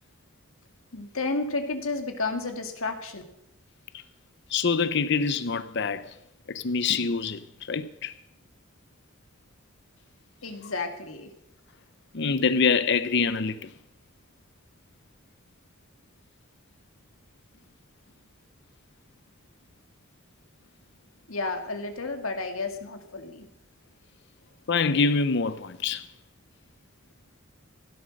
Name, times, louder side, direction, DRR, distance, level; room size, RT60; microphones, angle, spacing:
voice 1, 0.9-3.2 10.4-11.3 21.3-23.5, left 3 dB, 80° left, 2.2 m, -31 dB
voice 2, 4.5-6.0 6.5-8.1 12.1-13.7 24.7-26.1, left 5 dB, 55° left, 0.7 m, -25 dB
16.5 x 11.5 x 6.5 m
head